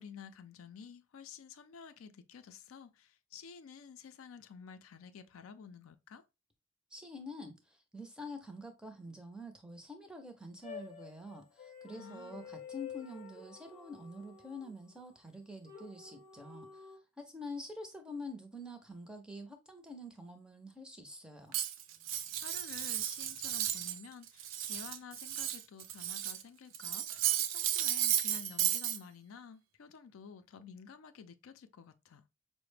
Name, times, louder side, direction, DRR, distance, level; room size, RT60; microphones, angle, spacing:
voice 1, 0.0-6.2 11.9-12.5 22.4-32.2, left 6 dB, 80° left, 0.4 m, -51 dB
voice 2, 6.9-21.5, left 1 dB, 5° right, 0.5 m, -47 dB
sound 1, 10.6-15.0 15.6-17.0, left 6 dB, 40° left, 0.6 m, -49 dB
Cutlery silverware, 21.5-24.0 24.3-26.4 26.7-29.0, right 11 dB, 70° right, 0.4 m, -34 dB
4.8 x 2.1 x 3.2 m
head